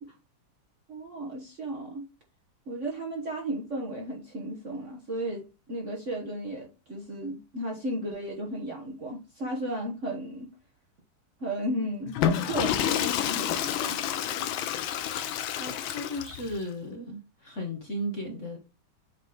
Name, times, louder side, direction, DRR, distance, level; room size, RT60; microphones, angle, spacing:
voice 1, 0.9-2.0 2.7-10.5 11.4-14.0, right 1 dB, 45° right, 1.1 m, -34 dB
Water / Toilet flush, 12.1-16.6, left 10 dB, 70° left, 1.4 m, -29 dB
voice 2, 15.5-18.6, equal, 40° left, 1.2 m, -35 dB
8.5 x 3.1 x 3.8 m
omnidirectional pair, 2.4 m